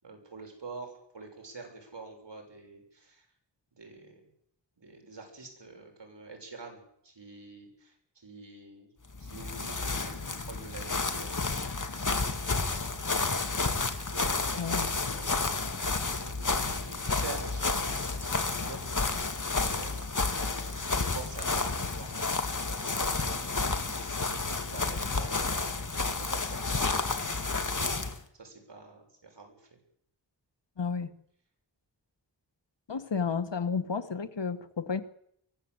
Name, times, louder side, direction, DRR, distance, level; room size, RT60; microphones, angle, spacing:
voice 1, 0.0-3.3 3.7-4.3 4.8-8.9 9.2-11.5 11.9-12.2 14.1-18.8 19.5-22.3 22.7-23.9 24.3-29.8, right 3 dB, 75° right, 3 dB, 7.2 m, -47 dB
sound 1, 9.1-28.2, left 3 dB, 45° left, 2.2 m, -31 dB
voice 2, 14.6-14.9 30.8-31.1 32.9-35.0, left 5 dB, 80° left, 10 dB, 1.7 m, -31 dB
24.0 x 16.5 x 8.2 m, 0.72 s
wide cardioid pair, 70°, 43 cm